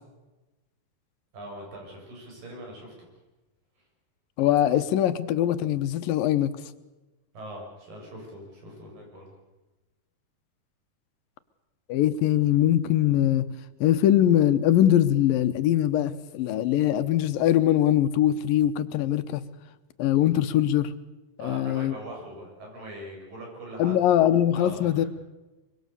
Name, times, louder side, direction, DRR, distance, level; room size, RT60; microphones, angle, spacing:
voice 1, 1.3-2.9 7.3-9.3 21.4-23.9 24.5-25.1, right 1 dB, 80° right, 0 dB, 9.0 m, -41 dB
voice 2, 4.4-6.5 11.9-13.4 13.8-19.4 20.0-20.9 21.4-21.9 23.8-25.1, left 12 dB, 85° left, 12 dB, 2.8 m, -22 dB
24.5 x 23.0 x 6.9 m, 1.1 s
omnidirectional pair, 3.9 m